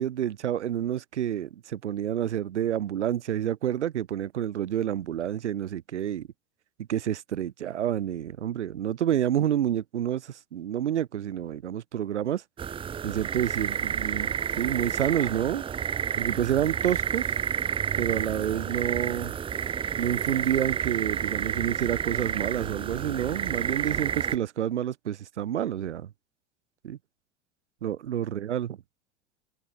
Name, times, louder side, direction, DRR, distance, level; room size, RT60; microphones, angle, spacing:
voice 1, 0.0-6.3 6.9-12.4 13.0-14.3 14.6-15.7 16.2-17.3 18.0-19.4 20.0-26.1 26.8-27.0 27.8-28.8, right 10 dB, 80° right, 0.7 m, -29 dB
sound 1, 12.6-24.4, right 8 dB, 15° right, 0.4 m, -30 dB
figure-of-eight pair, 75°, 34 cm